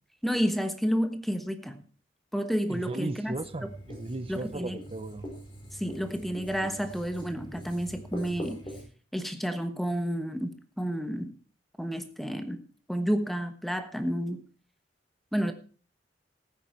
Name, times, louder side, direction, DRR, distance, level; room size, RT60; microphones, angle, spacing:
voice 1, 0.2-1.8 2.3-3.3 3.6-3.7 4.3-4.8 5.8-8.6 9.1-11.3 11.8-12.6 12.9-14.4 15.3-15.5, equal, ahead, 8 dB, 1.2 m, -30 dB
voice 2, 2.7-5.3, right 2 dB, 30° right, 12 dB, 0.8 m, -36 dB
Writing, 3.2-8.8, equal, 30° left, 4.5 m, -43 dB
15.0 x 9.1 x 4.5 m, 0.39 s
head